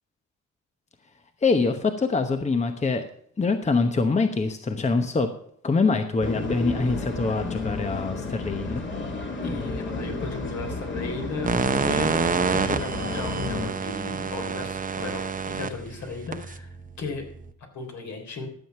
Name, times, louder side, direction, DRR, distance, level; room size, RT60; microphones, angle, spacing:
voice 1, 1.4-3.0 3.4-5.3 5.6-8.8, left 4 dB, 25° left, 7 dB, 1.0 m, -24 dB
sound 1, 6.2-13.7, left 3 dB, 40° left, 2.2 m, -32 dB
voice 2, 9.4-12.1 12.5-17.3 17.7-18.5, left 4 dB, 65° left, 3 dB, 3.6 m, -36 dB
sound 2, 11.4-17.5, right 5 dB, 25° right, 0.8 m, -28 dB
13.0 x 7.2 x 5.8 m, 0.65 s
cardioid pair, 90°, 30 cm